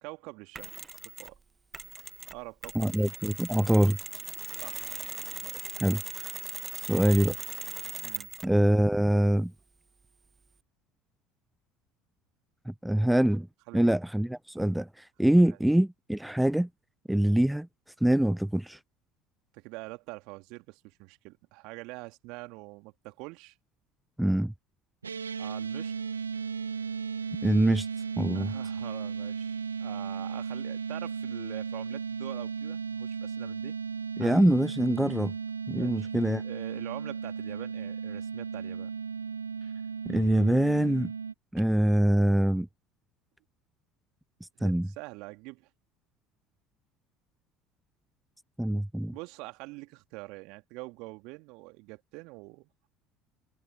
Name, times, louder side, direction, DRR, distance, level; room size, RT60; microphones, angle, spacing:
voice 1, 0.0-0.7 1.2-1.3 2.3-3.0 4.6-4.8 5.1-5.8 8.0-8.3 13.7-13.9 19.5-23.6 25.4-25.9 28.3-33.7 34.2-34.5 35.6-36.1 36.4-38.9 44.6-45.7 49.1-52.7, right 25 dB, 60° right, 2.6 m, -45 dB
Mechanisms, 0.5-1.4 1.7-8.6, right 4 dB, 20° right, 0.9 m, -39 dB
voice 2, 2.7-4.0 5.8-6.3 6.8-7.4 8.4-9.5 12.7-13.5 13.7-16.7 17.1-17.7 18.0-18.8 24.2-24.5 27.4-27.9 28.2-28.5 34.2-35.3 35.7-36.4 40.1-41.1 41.5-42.7 44.6-44.9 48.6-49.2, right 1 dB, 5° right, 0.4 m, -24 dB
sound 1, 25.0-41.3, right 6 dB, 85° right, 0.8 m, -35 dB
figure-of-eight pair, 65°, 0 cm